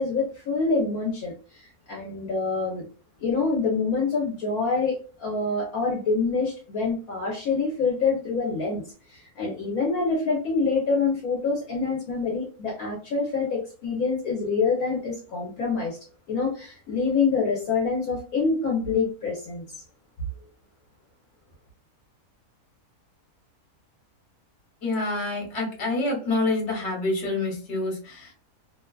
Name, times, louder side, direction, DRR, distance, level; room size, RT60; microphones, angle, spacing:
voice 1, 0.0-2.8 3.2-8.8 9.1-16.0 16.3-19.6, left 4 dB, 70° left, -2 dB, 1.1 m, -26 dB
voice 2, 24.8-28.3, left 2 dB, 50° left, 1 dB, 1.2 m, -27 dB
2.9 x 2.2 x 2.2 m, 0.37 s
omnidirectional pair, 1.6 m